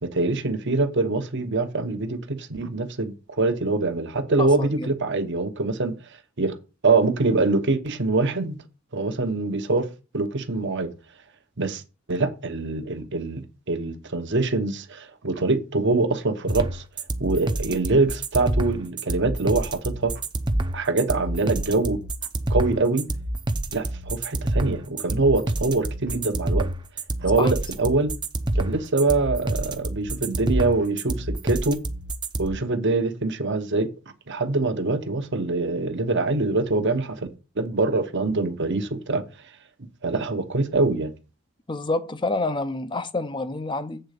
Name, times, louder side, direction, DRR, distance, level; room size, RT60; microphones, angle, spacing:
voice 1, 0.0-5.9 6.4-6.5 6.8-8.6 8.9-9.9 10.1-10.9 11.6-11.8 12.1-16.8 17.2-20.1 20.7-22.0 22.5-23.1 23.7-26.7 27.2-28.1 28.5-31.8 32.4-33.9 34.3-37.2 37.6-39.2 40.0-41.1, right 3 dB, 55° right, 1.0 m, -24 dB
voice 2, 4.4-4.9 27.4-27.5 41.7-44.0, left 2 dB, 20° left, 0.6 m, -28 dB
sound 1, 16.5-32.5, right 1 dB, 20° right, 0.6 m, -27 dB
7.9 x 3.9 x 6.6 m
head